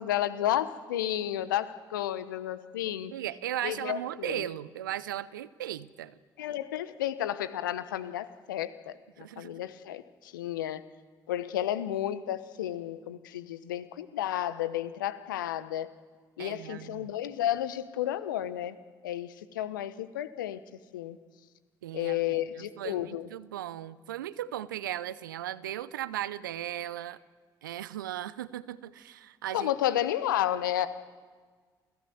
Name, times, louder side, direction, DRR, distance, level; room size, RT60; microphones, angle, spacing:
voice 1, 0.0-3.1 3.6-4.4 6.4-10.8 11.3-15.9 16.4-18.7 19.0-20.6 20.9-21.2 21.9-23.3 29.5-30.9, left 12 dB, 80° left, 14 dB, 1.0 m, -32 dB
voice 2, 3.1-6.2 9.2-9.6 16.4-17.1 21.8-27.2 27.6-30.0, right 12 dB, 80° right, 18 dB, 0.6 m, -37 dB
28.5 x 16.5 x 7.9 m, 1.5 s
figure-of-eight pair, 45°, 11 cm